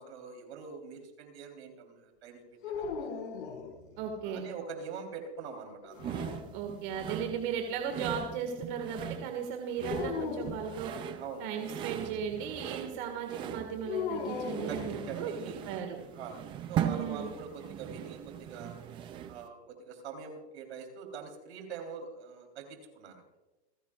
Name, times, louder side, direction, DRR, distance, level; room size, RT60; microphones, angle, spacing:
voice 1, 0.0-2.9 3.2-3.3 4.2-6.2 11.2-11.5 14.7-14.8 15.1-15.7 16.1-16.4 16.7-18.8 19.3-23.2, right 5 dB, 75° right, 4 dB, 3.7 m, -44 dB
sound 1, 2.6-4.2 5.8-7.0 9.8-10.6 13.8-15.5, left 6 dB, 70° left, 4.7 m, -38 dB
voice 2, 4.0-4.5 6.5-10.9 11.4-15.3 15.6-16.0 16.8-17.3, right 7 dB, 45° right, 3 dB, 1.9 m, -36 dB
sound 2, 6.0-19.5, right 10 dB, 15° right, 0.4 m, -39 dB
29.0 x 10.0 x 2.4 m, 1.1 s
supercardioid pair, 150°, 34 cm